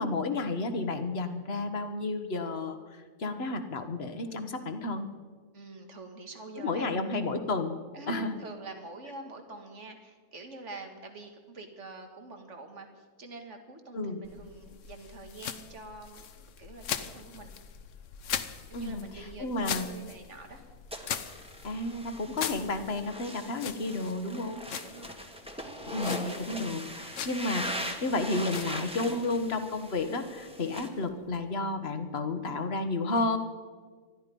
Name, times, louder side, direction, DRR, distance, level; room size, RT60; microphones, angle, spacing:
voice 1, 0.0-5.1 6.6-7.7 8.1-8.4 13.9-14.2 18.7-19.9 21.6-24.6 25.8-33.4, left 2 dB, 50° left, 8 dB, 1.5 m, -32 dB
voice 2, 5.5-7.2 7.9-17.5 18.7-20.6 24.8-25.3, right 3 dB, 60° right, 5 dB, 2.2 m, -46 dB
sound 1, 14.2-31.5, left 8 dB, 65° left, 1.2 m, -41 dB
sound 2, 20.9-30.9, equal, 5° right, 1.6 m, -40 dB
20.0 x 13.5 x 5.3 m, 1.5 s
omnidirectional pair, 1.4 m